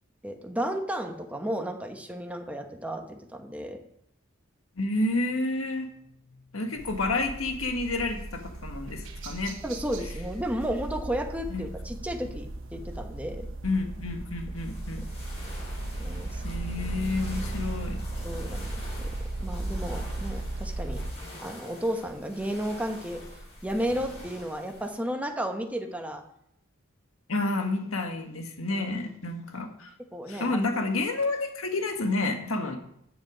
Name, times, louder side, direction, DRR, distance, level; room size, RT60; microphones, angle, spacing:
voice 1, 0.2-3.8 9.6-13.5 16.0-16.4 18.2-21.0 21.4-23.2 23.6-26.2 28.7-29.1 30.1-30.6, equal, 5° right, 4 dB, 1.1 m, -33 dB
voice 2, 4.8-5.9 6.3-9.6 11.5-11.6 13.6-15.0 16.4-18.0 27.3-29.9 30.3-32.8, left 2 dB, 70° left, 4 dB, 1.8 m, -30 dB
sound 1, 6.8-21.1, right 2 dB, 65° right, 1.3 m, -36 dB
sound 2, 14.5-24.9, left 1 dB, 30° left, 5.3 m, -46 dB
13.5 x 7.9 x 5.1 m, 0.73 s
head